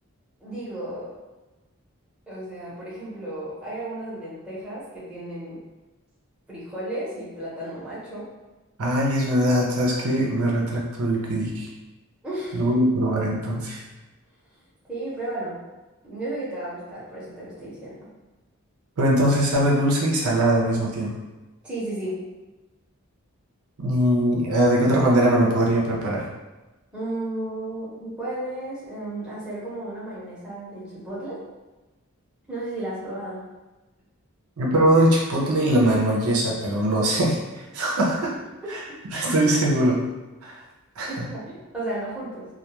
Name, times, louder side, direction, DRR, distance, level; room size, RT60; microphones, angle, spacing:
voice 1, 0.4-1.1 2.3-5.6 6.5-8.3 12.2-12.7 14.9-15.6 16.0-18.0 21.6-22.2 26.9-31.4 32.5-33.4 41.1-42.5, right 1 dB, 5° right, -10 dB, 0.7 m, -33 dB
voice 2, 8.8-11.7 12.5-13.8 19.0-21.1 23.8-26.3 34.6-37.4 37.7-38.3 38.7-38.8 39.1-40.0 40.4-40.5 41.0-41.3, right 1 dB, 80° right, -3 dB, 0.6 m, -21 dB
2.2 x 2.2 x 2.9 m, 1.1 s
head